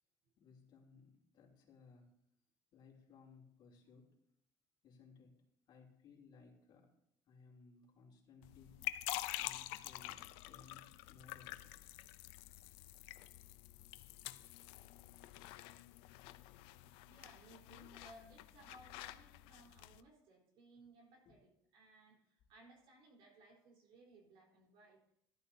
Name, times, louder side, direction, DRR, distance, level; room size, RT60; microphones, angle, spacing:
voice 1, 0.4-2.1 2.7-4.1 4.8-6.9 7.3-8.8 9.3-11.8 21.2-21.3, left 5 dB, 55° left, -2 dB, 3.0 m, -62 dB
sound 1, 8.4-20.0, left 17 dB, 85° left, 0.5 m, -48 dB
voice 2, 17.1-25.0, right 2 dB, 70° right, -1 dB, 3.9 m, -62 dB
14.0 x 12.0 x 2.8 m, 0.73 s
cardioid pair, 110°, 9 cm